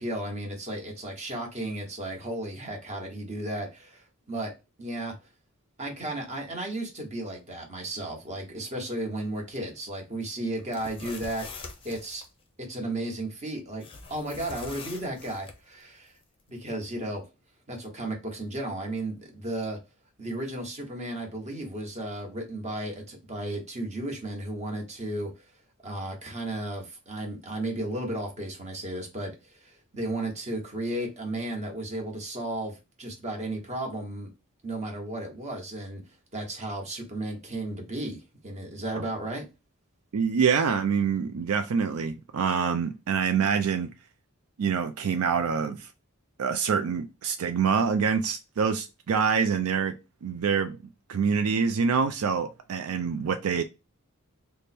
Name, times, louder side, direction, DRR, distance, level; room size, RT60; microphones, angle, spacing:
voice 1, 0.0-4.5 4.8-5.1 5.8-12.2 12.6-13.8 14.1-16.1 16.5-17.2 17.7-19.8 20.2-25.3 25.8-34.3 34.6-36.0 36.3-39.4, right 1 dB, 30° right, 1.1 m, -34 dB
sound 1, 10.6-12.3 13.8-15.6, left 4 dB, 25° left, 0.6 m, -43 dB
voice 2, 40.1-43.9 44.6-45.9 46.4-49.9 50.2-50.8 51.1-53.6, right 6 dB, 85° right, 0.4 m, -26 dB
3.3 x 2.1 x 4.2 m
head